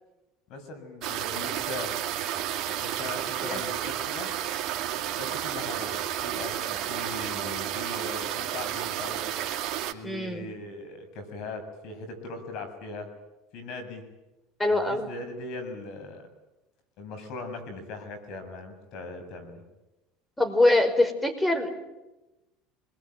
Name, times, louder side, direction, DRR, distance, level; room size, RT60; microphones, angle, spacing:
voice 1, 0.5-2.0 2.7-4.3 5.1-9.3 9.9-13.1 13.5-14.0 14.7-16.2 17.0-19.6, left 2 dB, 65° left, 8 dB, 7.1 m, -39 dB
sound 1, 1.0-9.9, right 11 dB, 55° right, 2.4 m, -31 dB
voice 2, 10.0-10.4 14.6-15.1 20.4-21.8, left 2 dB, 10° left, 8 dB, 5.1 m, -23 dB
27.5 x 21.5 x 9.3 m, 1.0 s
supercardioid pair, 95°, 0 cm